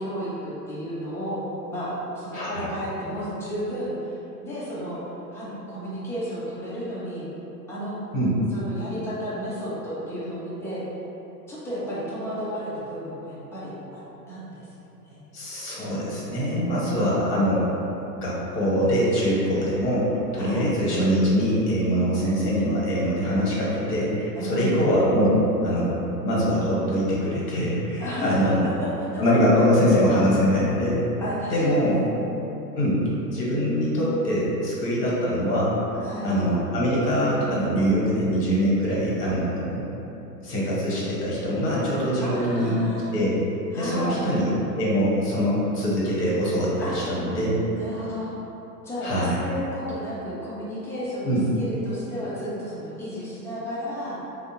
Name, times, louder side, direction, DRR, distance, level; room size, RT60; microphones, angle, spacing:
voice 1, 0.0-1.4 1.7-5.0 5.3-7.3 7.7-7.9 8.5-10.8 11.5-14.0 14.3-14.7 15.0-15.2 16.7-17.3 20.3-20.7 24.3-24.8 28.0-29.1 31.2-32.1 35.9-36.3 42.2-43.1 43.7-44.3 46.8-47.1 47.7-48.4 48.8-54.2, equal, 5° left, -9 dB, 0.5 m, -32 dB
voice 2, 2.3-2.7 8.1-8.3 15.3-17.6 18.2-28.6 29.2-31.0 31.5-32.0 32.8-35.8 36.2-39.8 40.4-42.8 43.1-43.4 43.7-44.5 44.8-47.6 49.0-49.4 51.2-51.4, equal, 70° left, -6 dB, 1.4 m, -23 dB
3.3 x 2.7 x 2.8 m, 3.0 s
hypercardioid pair, 105°, 48 cm